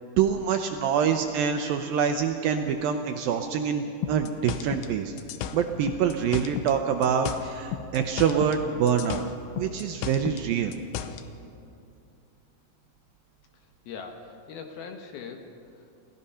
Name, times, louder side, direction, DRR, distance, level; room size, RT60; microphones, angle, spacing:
voice 1, 0.2-5.2 5.5-9.2 9.6-10.7, right 7 dB, 80° right, 5 dB, 2.0 m, -25 dB
sound 1, 4.0-6.8 7.0-8.6 8.9-11.2, left 10 dB, 90° left, 3.2 m, -34 dB
voice 2, 13.5-15.5 15.7-15.9, left 5 dB, 70° left, 4 dB, 2.8 m, -41 dB
28.5 x 16.5 x 5.6 m, 2.5 s
omnidirectional pair, 5.1 m